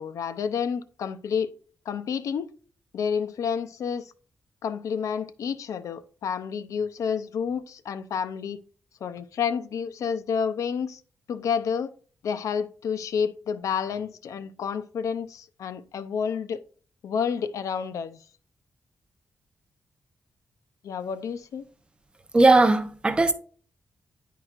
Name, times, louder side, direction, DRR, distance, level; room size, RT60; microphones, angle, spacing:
voice 1, 0.0-1.5 1.9-2.5 2.9-4.1 4.6-8.6 9.0-11.0 11.3-11.9 12.2-16.6 17.0-18.2 20.8-21.6, left 7 dB, 80° left, 0.5 m, -29 dB
voice 2, 22.3-23.3, right 2 dB, 20° right, 0.6 m, -18 dB
9.8 x 4.7 x 2.4 m
wide cardioid pair, 155°, 5 cm